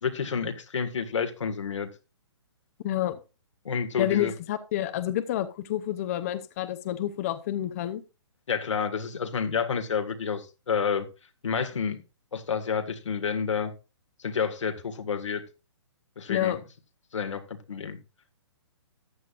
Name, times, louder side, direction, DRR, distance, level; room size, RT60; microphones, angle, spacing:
voice 1, 0.0-1.9 3.7-4.3 8.5-11.1 11.4-12.0 12.3-13.7 14.2-15.4 16.2-16.6 17.1-18.0, left 6 dB, 85° left, 1.8 m, -29 dB
voice 2, 2.8-3.2 4.0-8.0 16.3-16.6, left 12 dB, 30° left, 0.7 m, -29 dB
14.0 x 9.0 x 2.5 m
hypercardioid pair, 160°, 15 cm